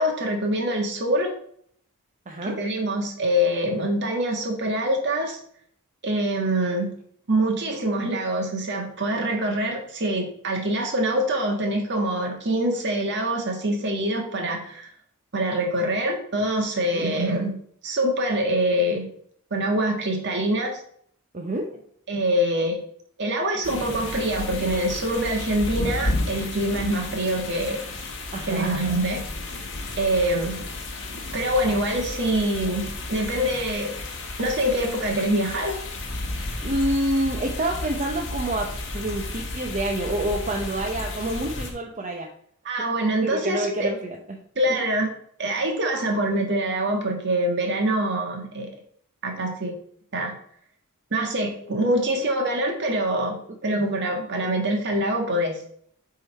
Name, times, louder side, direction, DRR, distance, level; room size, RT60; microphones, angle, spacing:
voice 1, 0.0-1.3 2.5-5.4 6.0-6.9 7.3-14.9 15.3-17.6 17.8-19.1 19.5-20.8 22.1-22.8 23.2-27.8 28.5-29.2 30.0-30.6 31.3-33.9 34.4-35.8 42.6-43.9 44.5-45.1 45.4-48.7 49.2-49.8 50.1-50.3 51.1-55.6, right 1 dB, 55° right, 2 dB, 1.6 m, -25 dB
voice 2, 2.3-2.6 16.9-17.1 21.3-21.8 28.3-28.7 31.1-31.2 36.4-42.3 43.2-44.4 53.7-53.8, right 1 dB, 35° right, 1 dB, 0.7 m, -28 dB
sound 1, 23.6-41.7, left 2 dB, 60° left, 1.6 m, -32 dB
8.0 x 3.9 x 4.2 m, 0.63 s
head